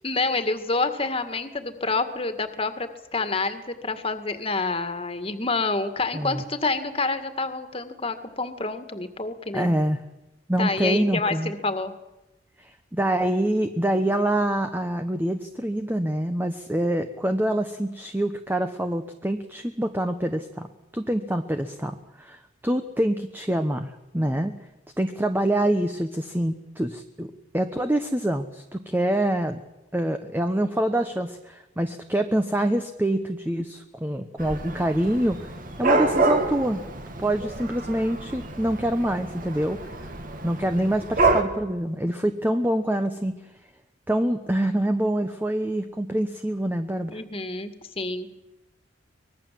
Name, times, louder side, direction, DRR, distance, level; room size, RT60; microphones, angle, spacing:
voice 1, 0.0-9.7 10.6-11.9 47.1-48.3, left 3 dB, 30° left, 9 dB, 2.0 m, -28 dB
voice 2, 9.5-10.0 10.5-11.5 12.6-20.7 20.9-24.5 25.0-27.3 27.5-29.6 29.9-35.5 35.8-36.8 37.2-40.1 40.4-43.4 44.1-47.1, right 1 dB, 10° right, 7 dB, 1.0 m, -25 dB
Dog / Cat, 34.4-41.4, right 3 dB, 45° right, 2.5 m, -27 dB
24.5 x 20.0 x 7.6 m, 0.99 s
head